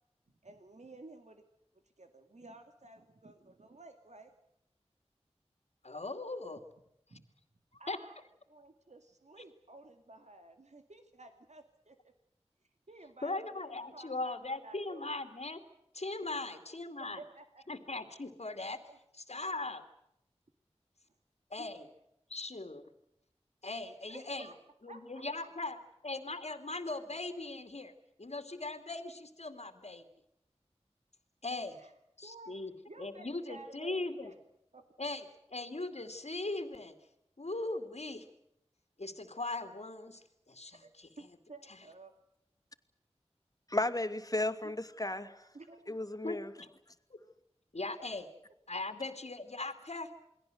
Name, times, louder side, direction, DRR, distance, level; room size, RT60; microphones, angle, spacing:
voice 1, 0.4-1.4 2.0-4.3 7.1-7.3 7.8-8.2 8.5-12.0 12.9-15.2 16.2-16.7 17.2-17.6 18.9-19.0 21.6-21.7 24.1-24.5 24.8-25.8 31.7-31.9 32.2-32.6 32.9-34.3 34.7-34.8 40.8-40.9 41.2-42.1 44.6-44.8 45.5-46.0, right 2 dB, 85° right, 2.2 m, -53 dB
voice 2, 5.8-6.6 7.7-8.0 13.2-15.6 15.9-17.2 17.7-18.8 19.1-19.8 21.5-21.9 22.3-22.8 23.6-24.5 24.8-25.8 26.0-27.9 28.2-30.0 31.4-31.8 32.2-32.7 33.0-34.3 35.0-35.2 35.5-36.9 37.4-38.3 39.0-41.1 41.7-41.8 46.2-46.7 47.1-47.2 47.7-48.2 48.7-50.1, left 2 dB, 70° left, 2.7 m, -39 dB
voice 3, 43.7-45.5 45.9-46.5, left 2 dB, 30° left, 2.5 m, -34 dB
29.0 x 21.5 x 7.9 m
wide cardioid pair, 40°, 12 cm